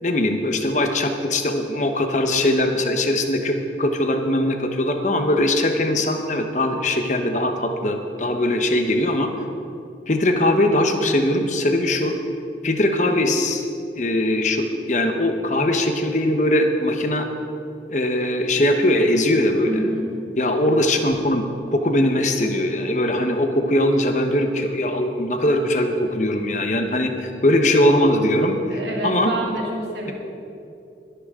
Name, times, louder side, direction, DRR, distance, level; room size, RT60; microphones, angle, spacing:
voice 1, 0.0-9.3 10.1-12.1 12.6-13.6 13.9-17.3 17.9-19.7 20.4-29.3 30.0-30.1, left 1 dB, 40° left, 5 dB, 1.1 m, -21 dB
voice 2, 19.7-20.1 28.7-30.1, right 1 dB, 65° right, -2 dB, 2.5 m, -28 dB
21.5 x 10.0 x 3.8 m, 2.6 s
head